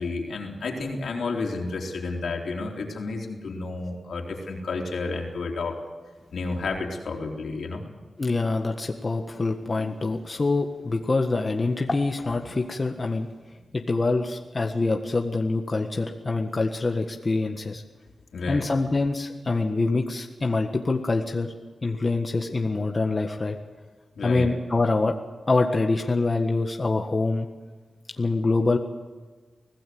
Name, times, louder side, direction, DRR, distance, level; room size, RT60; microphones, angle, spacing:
voice 1, 0.0-5.8 6.3-7.8 9.8-9.9 18.3-18.7 24.2-24.5, left 3 dB, 80° left, 1 dB, 3.9 m, -31 dB
voice 2, 8.2-13.3 13.9-17.8 18.5-21.5 21.8-23.5 24.2-25.1 25.5-27.5 28.2-28.8, left 3 dB, 40° left, 3 dB, 1.6 m, -25 dB
24.5 x 17.0 x 7.9 m, 1.4 s
cardioid pair, 75°, 0 cm